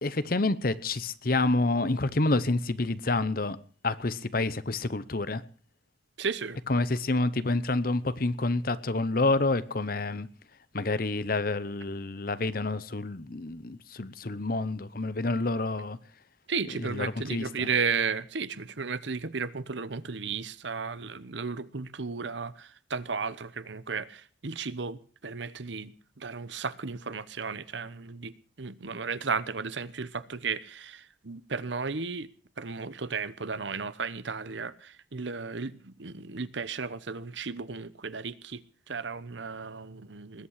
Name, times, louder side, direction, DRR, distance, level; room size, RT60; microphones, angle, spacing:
voice 1, 0.0-3.6 3.8-5.4 6.7-10.3 10.7-16.0 16.8-17.7, left 2 dB, 50° left, 0.9 m, -28 dB
voice 2, 6.2-6.6 16.5-32.3 32.6-40.5, right 5 dB, 75° right, 0.9 m, -34 dB
20.5 x 8.6 x 6.5 m
head